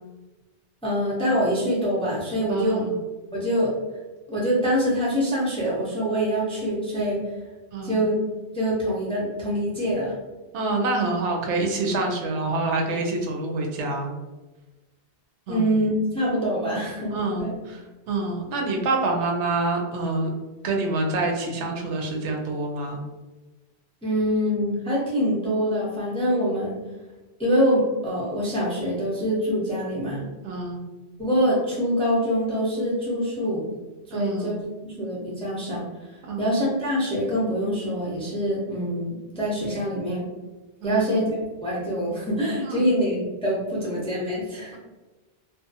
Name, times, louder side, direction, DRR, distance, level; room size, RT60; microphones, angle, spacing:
voice 1, 0.8-2.8 3.3-3.7 4.3-7.2 7.8-8.2 8.5-10.2 15.5-17.5 24.0-26.8 27.4-30.3 31.2-33.7 34.1-34.7 35.0-35.9 36.4-40.3 40.8-44.8, equal, 10° left, -6 dB, 0.4 m, -25 dB
voice 2, 2.5-3.0 7.7-8.0 10.5-14.1 15.5-15.7 17.1-20.3 20.6-23.0 30.4-30.8 34.1-34.6 36.2-36.6 40.8-41.2 42.6-42.8, right 3 dB, 85° right, 1 dB, 0.9 m, -27 dB
2.5 x 2.1 x 2.6 m, 1.2 s
omnidirectional pair, 1.1 m